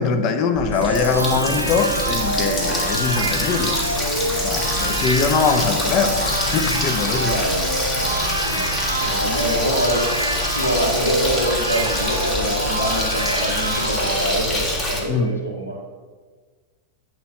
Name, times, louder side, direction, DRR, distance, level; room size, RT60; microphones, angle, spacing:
voice 1, 0.0-3.8 4.4-7.4 15.1-15.3, left 5 dB, 40° left, 8 dB, 0.6 m, -22 dB
Water tap faucet, 0.5-15.0, left 1 dB, 20° left, 1.5 m, -25 dB
sound 1, 0.7-14.4, right 1 dB, 90° right, 0.5 m, -26 dB
voice 2, 7.3-7.7 8.0-10.2 10.5-15.8, right 1 dB, 85° left, -3 dB, 1.6 m, -26 dB
9.3 x 3.1 x 4.3 m, 1.5 s
figure-of-eight pair, 90°, 0 cm